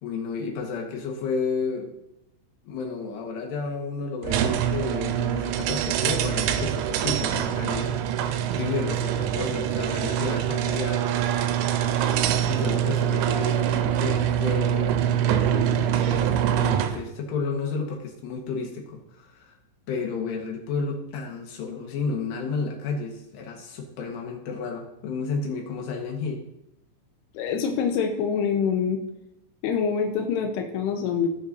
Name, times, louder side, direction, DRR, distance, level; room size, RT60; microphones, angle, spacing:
voice 1, 0.0-1.9 2.6-8.0 8.6-11.1 12.5-19.5 19.9-26.4, left 4 dB, 65° left, 1 dB, 3.2 m, -32 dB
sound 1, 4.2-17.0, right 10 dB, 85° right, 3.0 m, -24 dB
voice 2, 27.3-29.0 29.6-31.3, left 6 dB, 80° left, 3 dB, 2.4 m, -25 dB
17.0 x 7.1 x 2.7 m, 0.86 s
omnidirectional pair, 5.9 m